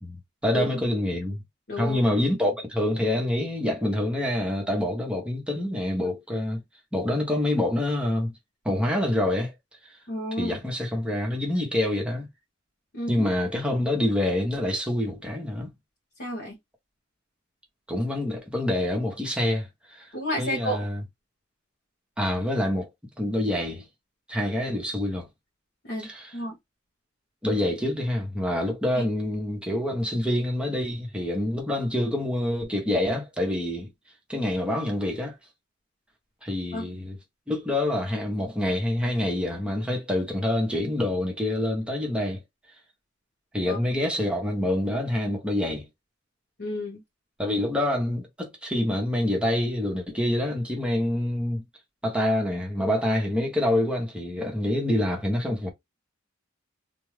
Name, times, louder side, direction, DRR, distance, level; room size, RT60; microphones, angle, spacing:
voice 1, 0.0-1.4 1.8-6.6 6.9-8.3 8.6-9.5 10.4-12.3 13.1-15.7 17.9-20.1 20.4-21.0 22.2-22.9 23.2-23.9 24.3-25.3 26.0-26.3 27.4-33.9 34.3-35.3 36.4-37.2 37.5-42.4 43.5-45.9 47.4-51.6 52.0-55.7, left 1 dB, 5° right, 1.1 m, -26 dB
voice 2, 1.7-2.0 10.1-10.6 12.9-13.3 16.2-16.6 20.1-20.8 25.8-26.6 28.9-29.0 36.7-36.8 43.7-43.8 46.6-47.0, equal, 55° left, 1.2 m, -31 dB
2.6 x 2.2 x 3.3 m
head